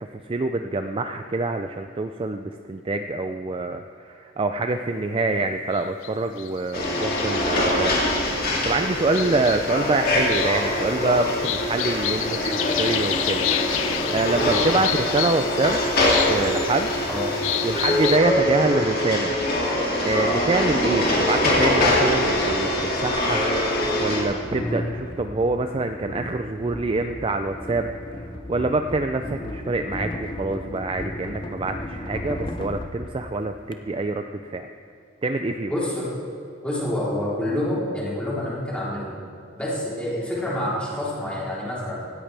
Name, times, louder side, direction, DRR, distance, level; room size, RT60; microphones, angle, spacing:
voice 1, 0.1-15.8 16.3-16.9 17.6-19.3 20.0-23.4 24.0-34.7 35.2-35.7, right 3 dB, 25° right, 7 dB, 0.4 m, -26 dB
sound 1, 5.7-6.1 6.4-18.2, left 12 dB, 65° left, 0.5 m, -31 dB
sound 2, 6.7-24.2, left 1 dB, 45° left, 2.6 m, -23 dB
sound 3, 22.1-22.2 23.1-33.8, left 1 dB, 25° left, 0.7 m, -35 dB
voice 2, 35.7-36.1 36.6-39.1 39.5-42.0, left 1 dB, 5° left, -7 dB, 3.5 m, -27 dB
17.5 x 14.0 x 3.4 m, 2.5 s
head